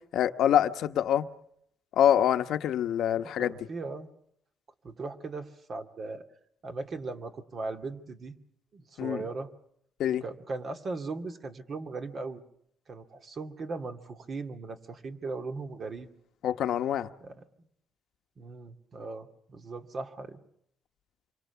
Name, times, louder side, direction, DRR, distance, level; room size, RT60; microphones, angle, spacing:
voice 1, 0.1-1.3 2.0-3.6 9.0-9.3 10.0-10.2 16.4-17.1, left 10 dB, 70° left, 1.1 m, -25 dB
voice 2, 3.2-4.1 4.8-6.2 6.6-8.4 8.7-9.5 10.2-12.4 12.9-16.1 17.2-17.4 18.4-20.4, right 3 dB, 45° right, 2.3 m, -38 dB
27.5 x 24.0 x 7.1 m
cardioid pair, 110°, 0 cm